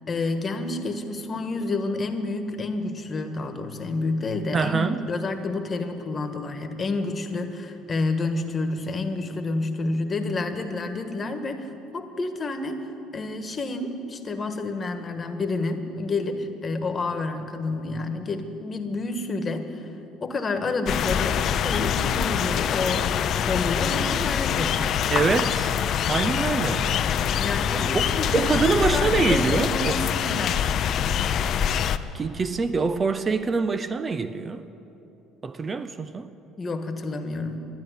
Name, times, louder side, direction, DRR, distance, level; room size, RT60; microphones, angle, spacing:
voice 1, 0.1-12.8 13.1-19.9 20.2-24.8 27.4-30.7 36.6-37.7, left 3 dB, 30° left, 1.6 m, -29 dB
voice 2, 4.5-5.1 25.1-25.7 26.1-26.9 27.9-28.0 28.3-30.0 32.1-34.6 35.4-36.3, right 4 dB, 30° right, 0.6 m, -25 dB
sound 1, 20.9-32.0, left 8 dB, 55° left, 0.6 m, -24 dB
12.5 x 11.5 x 9.9 m
supercardioid pair, 85°, 0 cm